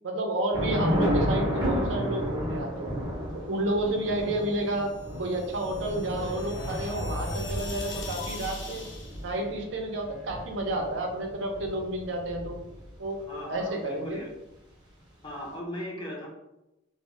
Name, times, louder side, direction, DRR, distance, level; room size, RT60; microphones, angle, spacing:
voice 1, 0.0-2.9 3.3-8.8 9.2-12.6 13.0-13.2 13.5-14.2, right 1 dB, 75° right, 2 dB, 0.5 m, -30 dB
Thunder / Rain, 0.5-13.0, equal, 20° right, 0.6 m, -33 dB
sound 1, 4.7-9.2, left 1 dB, 75° left, 0.5 m, -37 dB
voice 2, 13.3-14.3 15.2-16.3, equal, 25° left, -1 dB, 0.5 m, -38 dB
2.1 x 2.0 x 3.6 m, 0.93 s
head